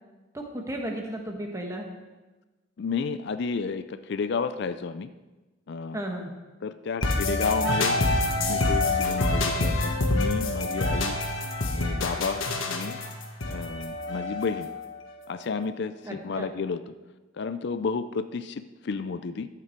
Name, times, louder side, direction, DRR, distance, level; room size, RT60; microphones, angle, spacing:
voice 1, 0.3-1.9 5.9-6.3 16.0-16.5, right 1 dB, 15° right, 2 dB, 1.3 m, -34 dB
voice 2, 2.8-5.1 5.7-6.0 6.6-8.0 8.4-11.2 11.7-13.0 13.5-14.7 15.3-16.8 17.4-19.5, left 5 dB, 55° left, 12 dB, 0.4 m, -31 dB
sound 1, 7.0-14.8, left 2 dB, 75° left, 1.4 m, -26 dB
12.0 x 8.4 x 4.5 m, 1.2 s
head